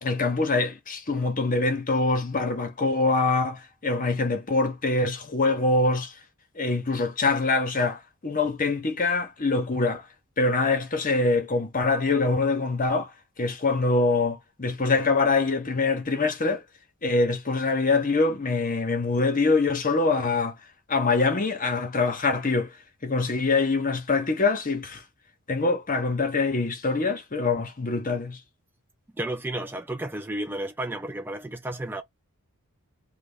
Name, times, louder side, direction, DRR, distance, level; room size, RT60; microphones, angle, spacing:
voice 1, 0.0-6.1 6.5-10.0 10.4-13.1 13.4-16.6 17.0-20.6 20.9-22.8 23.0-25.0 25.5-28.4, left 3 dB, 40° left, 1.0 m, -24 dB
voice 2, 29.2-32.0, right 1 dB, 10° right, 0.4 m, -32 dB
3.3 x 2.2 x 3.5 m
head